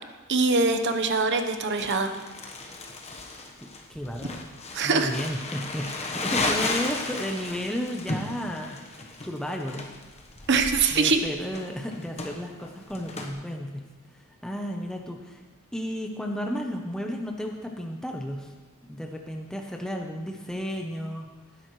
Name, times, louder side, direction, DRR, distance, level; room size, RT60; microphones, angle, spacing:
voice 1, 0.3-2.1 4.7-5.1 10.5-11.2, right 4 dB, 55° right, 6 dB, 1.1 m, -23 dB
Crumpling crinkling, 1.8-13.3, left 2 dB, 30° left, 1.2 m, -34 dB
voice 2, 3.6-4.4 4.8-9.9 10.9-13.9 14.1-15.4 15.7-18.5 18.9-21.3, equal, 5° left, 1 dB, 0.8 m, -33 dB
18.5 x 10.5 x 3.2 m, 1.3 s
head